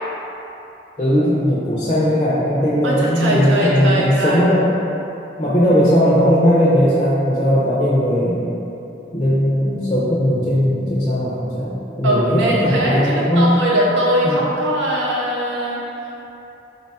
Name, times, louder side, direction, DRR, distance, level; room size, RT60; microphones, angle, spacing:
voice 1, 1.0-4.7 5.4-8.5 9.1-11.7 12.0-13.5 14.2-14.4, equal, 25° left, -8 dB, 0.4 m, -17 dB
voice 2, 2.8-4.4 12.0-15.8, equal, 85° right, -4 dB, 0.5 m, -20 dB
3.4 x 2.2 x 4.0 m, 2.9 s
head